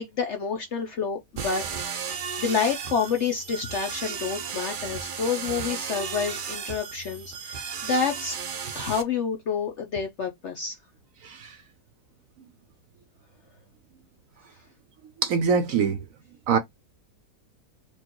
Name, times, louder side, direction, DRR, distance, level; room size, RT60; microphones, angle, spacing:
voice 1, 0.0-8.4 8.7-10.8, left 6 dB, 60° left, 0.8 m, -29 dB
sound 1, 1.4-9.0, right 6 dB, 85° right, 0.4 m, -34 dB
voice 2, 11.2-11.6 15.2-16.0 16.5-16.6, right 6 dB, 65° right, 0.9 m, -23 dB
4.5 x 2.4 x 4.5 m
omnidirectional pair, 1.8 m